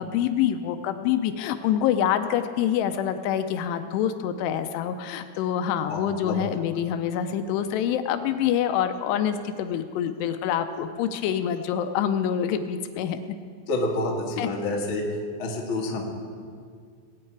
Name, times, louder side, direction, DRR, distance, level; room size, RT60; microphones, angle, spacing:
voice 1, 0.0-13.2 14.4-14.5, left 9 dB, 85° left, 9 dB, 2.7 m, -26 dB
voice 2, 5.9-6.3 13.7-15.0 15.4-16.0, left 2 dB, 55° left, -1 dB, 1.5 m, -28 dB
20.0 x 9.0 x 4.7 m, 2.1 s
omnidirectional pair, 4.9 m